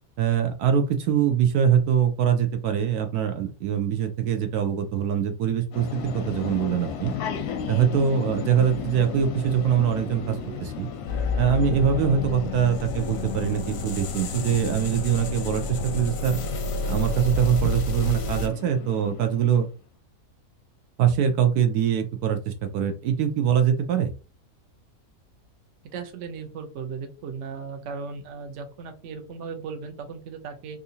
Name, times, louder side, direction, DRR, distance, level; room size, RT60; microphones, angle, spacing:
voice 1, 0.2-7.1 7.7-10.9 11.4-16.4 16.9-19.7 21.0-24.1, right 8 dB, 80° right, 7 dB, 1.1 m, -23 dB
sound 1, 5.7-19.6, left 7 dB, 85° left, 1.2 m, -36 dB
sound 2, 11.1-18.5, left 2 dB, 60° left, 0.7 m, -29 dB
voice 2, 25.8-30.8, right 5 dB, 60° right, 5 dB, 0.9 m, -37 dB
3.7 x 2.8 x 2.7 m, 0.32 s
omnidirectional pair, 1.6 m